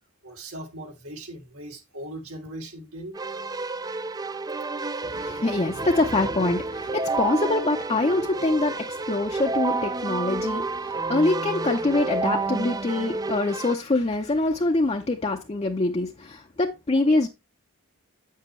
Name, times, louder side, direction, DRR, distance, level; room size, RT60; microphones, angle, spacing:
voice 1, 0.2-3.2, right 1 dB, 85° right, 3.1 m, -39 dB
Keyboard (musical), 3.1-13.7, right 3 dB, 15° right, 0.4 m, -30 dB
voice 2, 5.0-17.3, left 2 dB, 30° left, 0.6 m, -25 dB
8.4 x 7.5 x 3.1 m
head